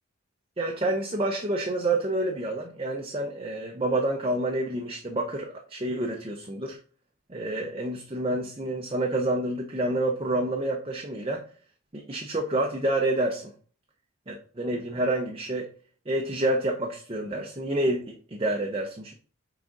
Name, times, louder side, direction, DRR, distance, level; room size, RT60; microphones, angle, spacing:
voice 1, 0.6-6.8 7.3-11.4 11.9-13.5 14.3-15.7 16.1-19.1, right 1 dB, 25° right, 1 dB, 0.7 m, -28 dB
6.1 x 5.0 x 3.8 m, 0.43 s
head